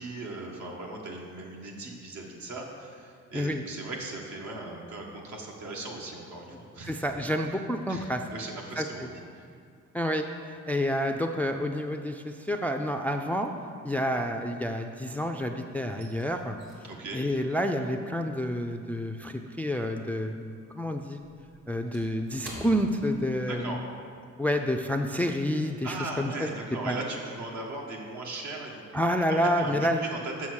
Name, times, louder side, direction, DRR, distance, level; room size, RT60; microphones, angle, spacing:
voice 1, 0.0-7.0 7.9-9.1 9.3-9.5 16.8-17.2 23.5-23.8 25.8-28.8 29.3-29.7 30.1-30.5, right 2 dB, 70° right, -1 dB, 1.6 m, -38 dB
voice 2, 6.9-8.2 8.8-9.1 9.9-13.5 13.8-16.6 17.1-21.2 21.7-23.8 24.4-27.0 28.9-30.0, equal, 5° left, 5 dB, 0.4 m, -29 dB
sound 1, 15.8-20.2 20.5-23.8 24.1-24.3 24.8-25.0, right 1 dB, 85° right, 2.0 m, -50 dB
7.2 x 5.9 x 6.3 m, 2.2 s
cardioid pair, 90°, 30 cm